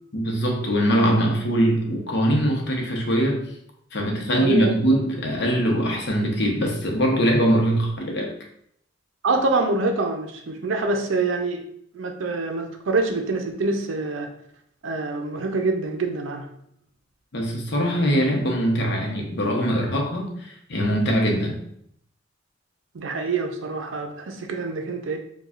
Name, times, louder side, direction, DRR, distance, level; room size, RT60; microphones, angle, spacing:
voice 1, 0.1-3.5 3.9-8.3 17.3-21.6, equal, 60° left, 0 dB, 0.8 m, -22 dB
voice 2, 4.4-4.7 9.2-11.6 11.9-14.3 14.8-16.5 22.9-25.2, right 3 dB, 80° right, 4 dB, 0.5 m, -25 dB
4.9 x 2.3 x 2.4 m, 0.69 s
head